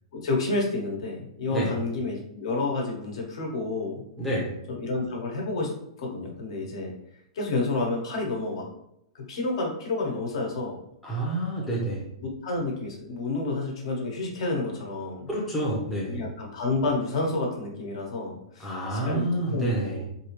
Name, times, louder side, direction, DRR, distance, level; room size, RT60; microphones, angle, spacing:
voice 1, 0.1-4.0 4.7-5.7 6.0-6.9 7.3-8.6 9.1-10.8 11.7-11.8 12.2-15.2 16.1-20.1, left 2 dB, 55° left, 0 dB, 1.3 m, -30 dB
voice 2, 4.2-4.5 11.0-12.0 15.3-16.2 18.6-20.1, right 1 dB, ahead, -6 dB, 0.7 m, -28 dB
4.7 x 2.7 x 3.0 m, 0.78 s
hypercardioid pair, 165°, 4 cm